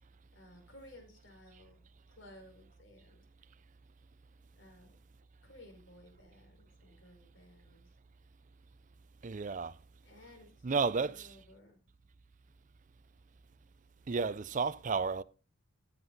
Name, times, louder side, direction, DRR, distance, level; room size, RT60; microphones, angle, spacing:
voice 1, 0.3-1.8 2.1-3.2 4.6-4.9 5.4-7.9 10.0-10.5 10.7-11.8, left 1 dB, 60° left, 5.1 m, -57 dB
voice 2, 9.2-9.8 10.6-11.4 14.1-15.2, right 4 dB, 40° right, 0.5 m, -32 dB
14.0 x 9.5 x 3.9 m
head